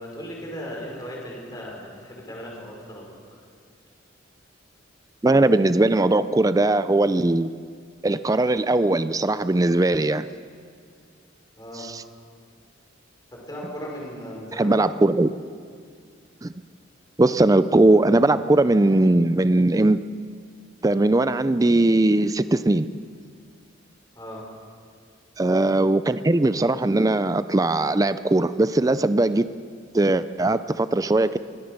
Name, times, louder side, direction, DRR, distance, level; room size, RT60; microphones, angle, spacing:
voice 1, 0.0-3.4 11.6-11.9 13.5-14.9 24.2-24.4, equal, 20° left, -3 dB, 5.5 m, -37 dB
voice 2, 5.2-7.5 8.0-10.2 11.8-12.0 14.6-15.3 16.4-16.5 17.2-20.0 20.8-22.9 25.4-29.4 29.9-31.4, right 2 dB, 20° right, 13 dB, 0.4 m, -20 dB
23.0 x 17.5 x 6.7 m, 2.1 s
head